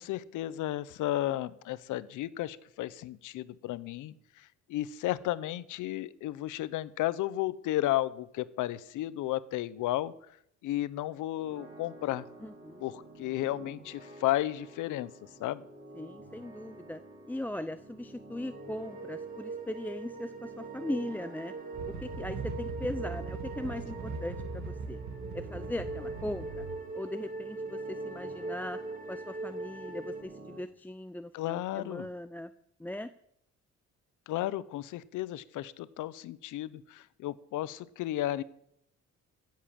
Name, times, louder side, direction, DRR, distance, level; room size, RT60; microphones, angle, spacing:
voice 1, 0.0-10.1 10.6-12.3 12.8-15.7 31.3-32.1 34.3-38.4, left 14 dB, 85° left, 18 dB, 0.7 m, -33 dB
sound 1, 11.4-30.6, right 1 dB, 45° right, 5.5 m, -51 dB
voice 2, 12.4-12.8 15.9-17.0 17.3-21.5 21.9-25.0 25.3-26.7 26.9-28.8 29.1-32.5 32.8-33.1, left 1 dB, 5° left, 10 dB, 0.5 m, -39 dB
sound 2, 18.5-30.2, right 3 dB, 30° right, 2.2 m, -41 dB
sound 3, 21.7-26.8, right 3 dB, 65° right, 1.8 m, -40 dB
16.0 x 7.5 x 7.4 m, 0.73 s
cardioid pair, 90°, 30 cm